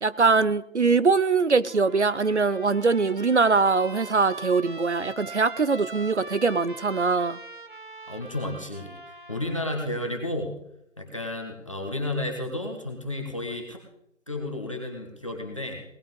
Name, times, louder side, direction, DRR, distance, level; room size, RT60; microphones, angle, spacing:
voice 1, 0.0-7.4, right 4 dB, 60° right, 16 dB, 0.7 m, -22 dB
Trumpet, 1.7-9.9, right 2 dB, 40° right, 1.5 m, -42 dB
voice 2, 8.1-8.9 9.3-10.6 11.0-13.8 14.3-15.8, left 1 dB, 25° left, 1 dB, 1.4 m, -32 dB
18.5 x 10.0 x 5.3 m, 0.76 s
figure-of-eight pair, 180°, 40 cm